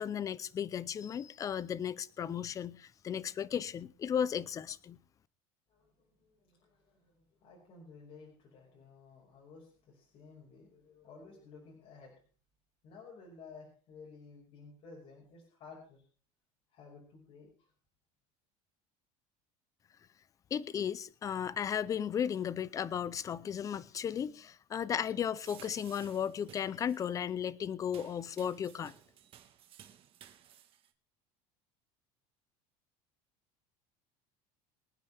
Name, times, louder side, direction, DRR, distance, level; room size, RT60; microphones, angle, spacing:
voice 1, 0.0-5.0 20.5-28.9, left 8 dB, 20° left, 0.5 m, -35 dB
voice 2, 5.7-12.1 12.8-16.0 16.7-17.7, left 4 dB, 45° left, 5.3 m, -54 dB
sound 1, 25.3-27.2 27.8-30.9, right 10 dB, 35° right, 1.4 m, -56 dB
23.5 x 9.3 x 3.4 m
cardioid pair, 155°, 15 cm